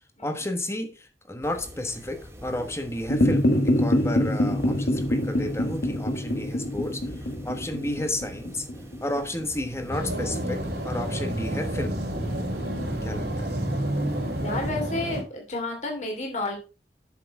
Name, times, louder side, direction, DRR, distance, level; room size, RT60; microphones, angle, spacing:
voice 1, 0.2-7.2 7.4-8.6 9.0-12.0 13.0-13.6, left 1 dB, 15° left, 7 dB, 1.3 m, -32 dB
sound 1, 1.4-14.7, equal, 15° right, 2.1 m, -43 dB
sound 2, 3.1-9.7, left 1 dB, 65° left, 1.7 m, -25 dB
sound 3, 9.9-15.2, right 1 dB, 70° right, 3.3 m, -29 dB
voice 2, 14.4-16.6, left 2 dB, 40° left, 1 dB, 2.7 m, -31 dB
8.4 x 6.8 x 4.7 m, 0.34 s
head